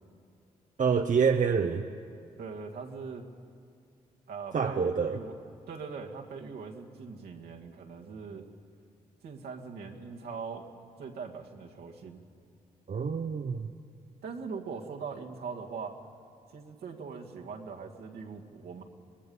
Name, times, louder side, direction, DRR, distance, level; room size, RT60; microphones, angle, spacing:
voice 1, 0.8-1.8 4.5-5.2 12.9-13.7, right 6 dB, 50° right, 6 dB, 0.9 m, -27 dB
voice 2, 2.4-3.2 4.3-5.4 5.7-8.5 9.2-10.7 11.0-12.2 14.2-15.9 16.5-18.8, right 5 dB, 75° right, 1 dB, 2.0 m, -41 dB
25.0 x 19.5 x 5.5 m, 2.4 s
supercardioid pair, 45°, 17 cm